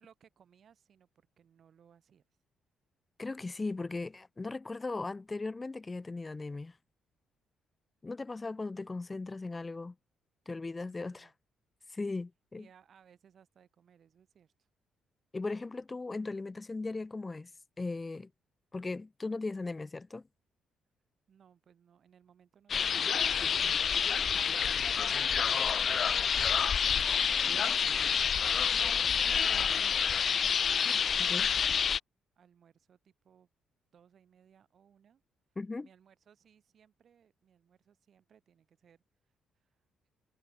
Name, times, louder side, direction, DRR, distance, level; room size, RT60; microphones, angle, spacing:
voice 1, 0.0-2.2 10.8-11.3 12.6-14.7 21.3-26.1 26.4-27.8 28.3-30.4 31.1-31.9 32.4-33.5 33.9-35.2 35.8-39.0 39.5-39.7, right 8 dB, 55° right, 7.8 m, -63 dB
voice 2, 3.2-6.8 8.0-9.9 10.5-11.3 11.9-12.7 15.3-17.5 17.8-18.3 18.7-20.2 30.8-31.0 31.3-31.5 35.6-35.9, left 3 dB, 25° left, 0.9 m, -38 dB
sound 1, 22.7-32.0, left 7 dB, 50° left, 0.3 m, -28 dB
cardioid pair, 90°, 0 cm